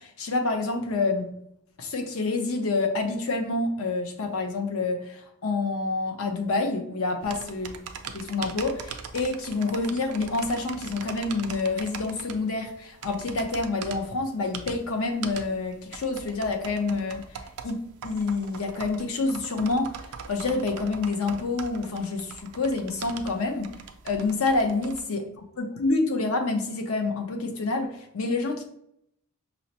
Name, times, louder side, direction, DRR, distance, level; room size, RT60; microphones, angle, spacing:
voice 1, 0.0-1.3 1.8-7.8 8.1-17.2 17.6-19.9 20.3-23.7 24.0-25.2 25.6-28.6, left 3 dB, 65° left, 4 dB, 0.6 m, -27 dB
sound 1, 7.2-25.0, right 6 dB, 85° right, 0.4 m, -41 dB
5.4 x 2.0 x 2.8 m, 0.75 s
head